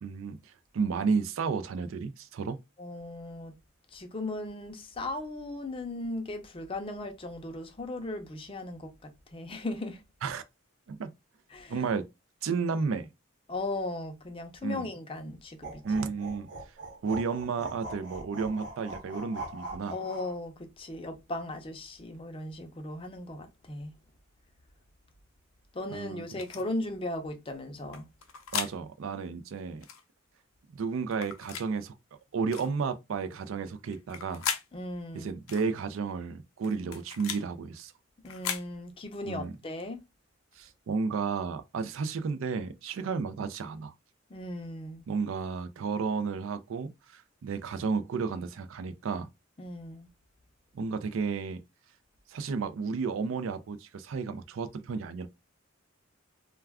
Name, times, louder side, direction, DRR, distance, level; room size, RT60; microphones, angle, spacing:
voice 1, 0.0-2.6 10.2-10.4 10.9-11.1 11.7-12.0 12.4-13.1 14.6-14.9 15.8-16.5 17.0-19.9 25.9-26.2 28.5-29.9 30.7-31.9 32.3-34.4 35.1-37.9 39.3-39.5 40.6-43.9 45.1-49.3 50.7-51.6 52.3-55.3, right 5 dB, 75° right, 0.4 m, -32 dB
voice 2, 2.8-3.5 3.9-10.0 11.5-11.8 13.5-16.1 19.9-23.9 25.7-28.0 34.7-35.3 38.2-40.0 44.3-45.0 49.6-50.1, left 2 dB, 25° left, 0.5 m, -37 dB
sound 1, 15.6-20.4, right 2 dB, 60° right, 0.9 m, -41 dB
sound 2, 26.4-26.6 27.9-28.7 29.8-30.0 31.1-31.7 32.5-32.7 33.9-34.7 35.5-35.7 36.6-37.4 38.2-38.7, left 8 dB, 85° left, 0.5 m, -36 dB
2.3 x 2.2 x 3.4 m
head